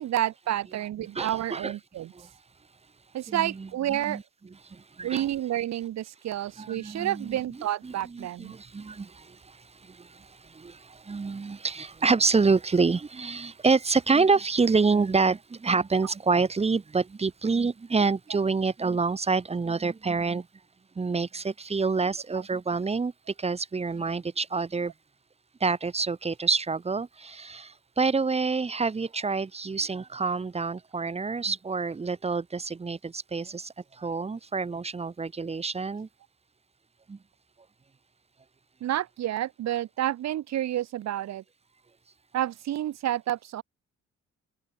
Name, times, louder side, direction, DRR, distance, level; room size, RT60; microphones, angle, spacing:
voice 1, 0.0-2.1 3.1-4.2 5.0-8.5 38.8-41.4 42.3-43.6, right 12 dB, 60° right, 0.9 m, -29 dB
voice 2, 1.1-1.7 2.1-2.3 3.3-4.2 4.6-5.3 6.6-7.6 7.8-20.5 21.0-24.9 25.6-36.1 37.1-37.2, right 4 dB, 20° right, 0.9 m, -27 dB
open air
cardioid pair, 90°, 30 cm